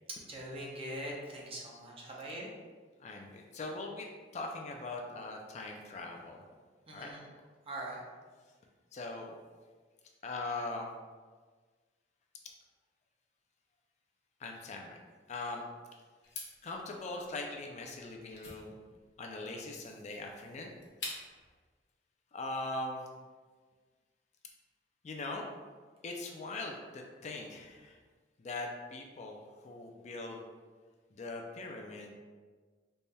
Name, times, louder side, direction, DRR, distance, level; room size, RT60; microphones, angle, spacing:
voice 1, 0.3-2.5 6.9-7.2 7.7-8.0, right 1 dB, 30° right, -3 dB, 0.7 m, -42 dB
voice 2, 3.0-4.1 4.3-6.4 6.9-7.1 8.9-9.3 10.2-10.9 14.4-15.0 15.3-15.6 16.6-18.8 19.2-20.7 22.3-23.0 25.0-25.4 26.0-28.0 28.4-30.4 31.1-32.1, left 2 dB, 40° left, 1 dB, 0.4 m, -41 dB
sound 1, 16.2-21.5, left 3 dB, 75° left, 0.8 m, -47 dB
4.0 x 3.4 x 2.2 m, 1.5 s
head